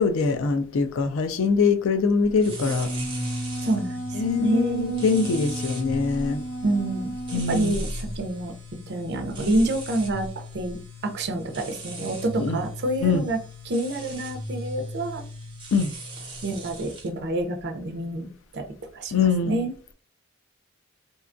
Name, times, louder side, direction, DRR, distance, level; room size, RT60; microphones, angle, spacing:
voice 1, 0.0-2.9 4.2-6.4 7.3-7.8 12.4-12.6 13.0-13.2 15.7-15.9 19.1-19.6, left 5 dB, 70° left, 0.4 m, -23 dB
Wind instrument woodwind instrument, 2.4-7.6, right 1 dB, 45° left, 0.9 m, -34 dB
sound 1, 2.4-17.1, equal, 25° right, 0.8 m, -37 dB
voice 2, 3.6-4.0 4.3-5.1 6.6-8.5 8.9-10.8 11.0-13.4 13.6-15.2 16.4-18.3 18.5-18.6 18.9-19.7, right 2 dB, 55° right, 0.5 m, -27 dB
2.7 x 2.2 x 2.5 m
head